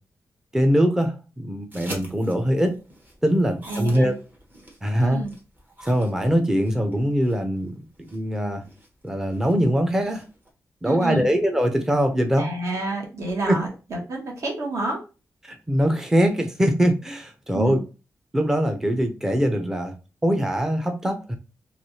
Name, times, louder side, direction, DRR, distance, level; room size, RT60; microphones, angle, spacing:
voice 1, 0.5-2.8 3.2-4.1 4.8-5.2 5.8-8.6 9.0-10.2 10.8-12.5 13.5-13.6 15.4-17.8 18.3-19.9 20.2-21.4, equal, 10° right, 0.5 m, -22 dB
sound 1, 1.7-10.5, right 1 dB, 35° right, 1.2 m, -46 dB
voice 2, 3.7-4.1 5.0-5.3 10.8-11.3 12.4-15.0 17.5-17.8, right 2 dB, 60° right, 1.3 m, -29 dB
3.2 x 3.0 x 2.7 m
wide cardioid pair, 125°, 6 cm